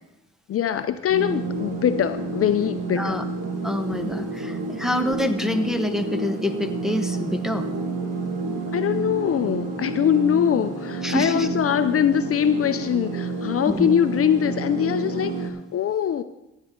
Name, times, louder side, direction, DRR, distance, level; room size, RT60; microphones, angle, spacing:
voice 1, 0.5-3.2 8.7-16.2, left 9 dB, 50° left, 11 dB, 0.6 m, -22 dB
sound 1, 1.1-15.5, right 3 dB, 55° right, 1.7 m, -30 dB
voice 2, 3.6-7.7 11.0-11.5 13.7-13.9, left 1 dB, ahead, 5 dB, 1.0 m, -26 dB
15.0 x 9.0 x 3.7 m, 0.91 s
cardioid pair, 90°, 30 cm